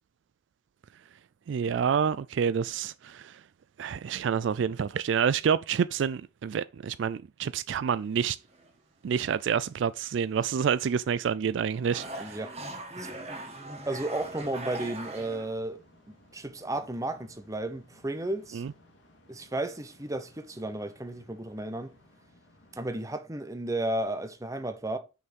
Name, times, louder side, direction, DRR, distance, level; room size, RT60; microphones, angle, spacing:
voice 1, 1.5-3.4 3.8-8.4 9.0-12.4 18.5-18.7, right 7 dB, 65° right, 0.3 m, -28 dB
sound 1, 8.0-8.7 9.3-9.4 10.3-11.3 11.6-15.5, right 2 dB, 30° right, 1.8 m, -41 dB
voice 2, 12.2-12.6 13.0-15.8 16.3-18.6 19.3-21.9 22.7-25.0, right 1 dB, 15° right, 0.8 m, -33 dB
sound 2, 14.2-23.1, left 1 dB, 70° left, 2.2 m, -60 dB
6.4 x 5.6 x 5.2 m
head